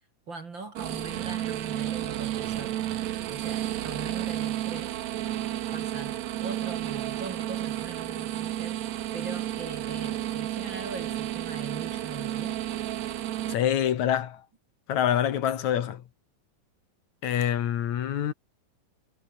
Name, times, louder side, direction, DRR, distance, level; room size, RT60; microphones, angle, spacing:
voice 1, 0.3-2.8 3.2-5.0 5.7-8.8 9.1-12.6, right 4 dB, 35° right, 2.8 m, -41 dB
sound 1, 0.7-13.5, right 13 dB, 65° right, 2.0 m, -32 dB
voice 2, 13.5-14.4 14.9-16.0 17.2-18.3, left 10 dB, 60° left, 2.7 m, -26 dB
omnidirectional pair, 4.0 m